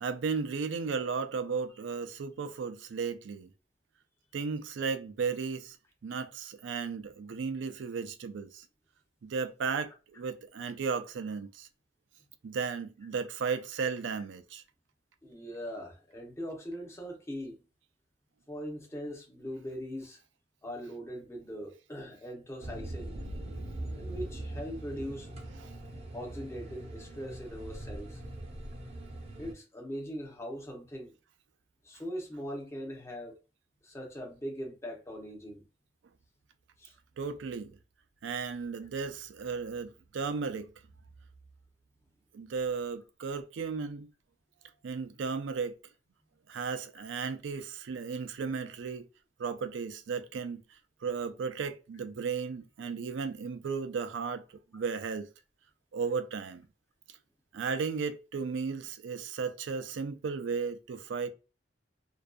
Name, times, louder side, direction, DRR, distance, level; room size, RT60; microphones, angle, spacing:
voice 1, 0.0-3.5 4.3-5.8 6.0-8.6 9.2-11.7 12.4-14.6 25.6-25.7 37.2-37.8 38.2-40.7 42.3-44.1 44.8-45.8 46.5-49.0 49.4-50.6 51.0-54.4 54.7-55.3 55.9-56.7 57.5-61.3, right 5 dB, 80° right, 0.4 m, -35 dB
voice 2, 15.2-17.6 18.5-20.2 20.6-23.2 23.9-25.3 26.1-28.2 29.4-31.1 31.8-33.4 33.8-35.6 36.8-37.0 47.0-47.1 54.7-54.8, equal, 15° left, 0.7 m, -41 dB
sound 1, 22.6-29.5, right 1 dB, 35° right, 0.6 m, -41 dB
2.6 x 2.3 x 2.2 m
head